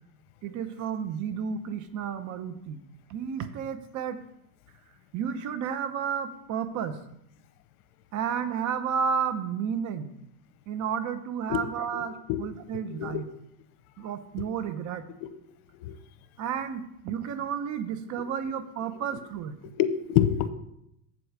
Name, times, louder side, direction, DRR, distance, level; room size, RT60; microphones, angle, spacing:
voice 1, 0.4-2.8 3.1-4.2 5.1-7.0 8.1-10.1 10.7-13.2 14.0-15.0 16.4-19.6, right 7 dB, 40° right, 9 dB, 0.8 m, -32 dB
voice 2, 11.9-12.4 12.7-13.2 14.4-14.5 15.2-15.3 15.8-16.0 19.8-20.5, left 11 dB, 65° left, 11 dB, 0.8 m, -27 dB
7.7 x 4.8 x 6.1 m, 0.77 s
hypercardioid pair, 95°, 47 cm